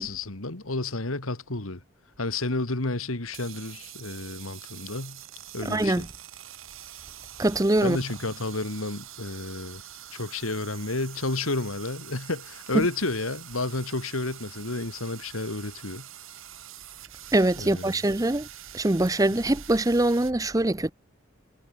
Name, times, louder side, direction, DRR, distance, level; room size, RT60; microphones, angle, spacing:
voice 1, 0.0-1.8 2.2-5.2 5.5-6.1 7.8-9.8 10.1-16.1 17.6-18.0, left 2 dB, 80° left, 2.2 m, -31 dB
sound 1, 3.2-20.3, right 12 dB, 70° right, 5.9 m, -45 dB
voice 2, 5.6-6.1 7.4-8.0 12.7-12.9 17.3-18.5 18.7-20.9, right 1 dB, 15° right, 0.6 m, -23 dB
head